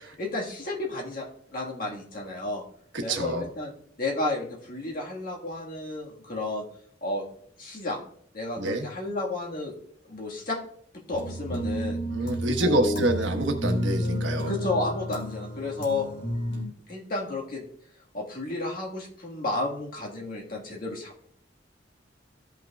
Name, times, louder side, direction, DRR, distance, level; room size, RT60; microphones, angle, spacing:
voice 1, 0.1-2.6 3.0-3.7 4.0-6.6 7.0-7.2 7.6-8.0 8.3-9.7 10.1-10.6 11.1-12.0 12.6-13.1 14.5-16.1 16.9-17.6 18.1-21.3, left 2 dB, 50° left, -1 dB, 1.6 m, -32 dB
voice 2, 2.9-3.5 8.6-8.9 12.1-14.5, right 1 dB, 75° right, 4 dB, 1.2 m, -27 dB
sound 1, 11.1-16.6, equal, 70° left, 2.1 m, -31 dB
15.5 x 5.7 x 2.3 m, 0.64 s
head